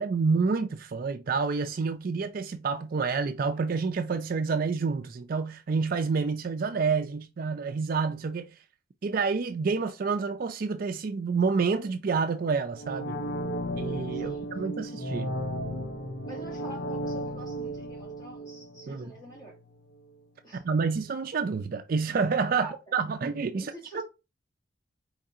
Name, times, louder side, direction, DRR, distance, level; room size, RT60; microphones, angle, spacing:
voice 1, 0.0-8.6 9.0-13.2 13.8-15.3 18.9-19.1 20.5-24.0, right 5 dB, 50° right, 0.4 m, -28 dB
sound 1, 12.7-19.6 19.9-20.0, equal, 60° left, 0.9 m, -35 dB
voice 2, 14.1-14.5 16.3-19.5 20.4-20.6 22.5-22.7 23.5-24.0, right 1 dB, 20° left, 1.2 m, -46 dB
4.8 x 3.2 x 2.6 m
head